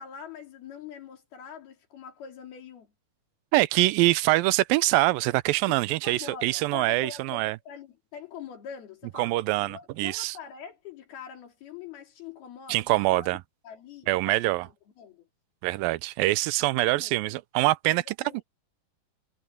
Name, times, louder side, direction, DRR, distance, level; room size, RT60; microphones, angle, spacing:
voice 1, 0.0-2.9 5.9-12.9 13.1-13.4 13.6-15.3 16.7-17.1 17.9-18.4, left 7 dB, 85° left, 5.2 m, -44 dB
voice 2, 3.5-7.6 9.2-10.4 12.7-13.4 14.1-14.7 15.6-18.0, right 19 dB, 80° right, 2.3 m, -24 dB
omnidirectional pair, 4.3 m